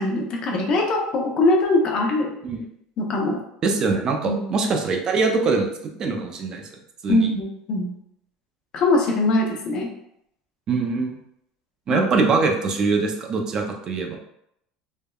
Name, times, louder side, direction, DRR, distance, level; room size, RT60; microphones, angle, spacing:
voice 1, 0.0-2.3 3.0-3.4 4.3-4.4 7.1-7.9 8.7-9.9 11.9-12.1, left 2 dB, 45° left, 0 dB, 0.6 m, -22 dB
voice 2, 3.6-5.7 6.0-6.6 7.0-7.3 10.7-11.2 11.9-14.2, right 4 dB, 35° right, 2 dB, 0.4 m, -23 dB
3.4 x 2.1 x 2.2 m, 0.76 s
cardioid pair, 135°, 2 cm